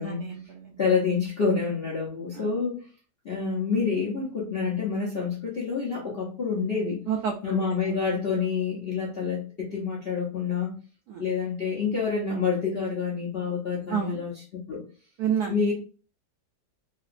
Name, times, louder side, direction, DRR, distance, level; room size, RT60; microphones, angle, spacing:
voice 1, 0.0-0.7 2.3-2.5 7.1-7.6 11.1-11.2 13.9-14.2 15.2-15.5, right 7 dB, 75° right, 1 dB, 0.8 m, -29 dB
voice 2, 0.8-2.8 3.2-7.0 7.4-10.7 11.2-14.8 15.5-15.7, left 5 dB, 60° left, -4 dB, 0.6 m, -28 dB
3.4 x 2.9 x 2.5 m, 0.37 s
omnidirectional pair, 2.1 m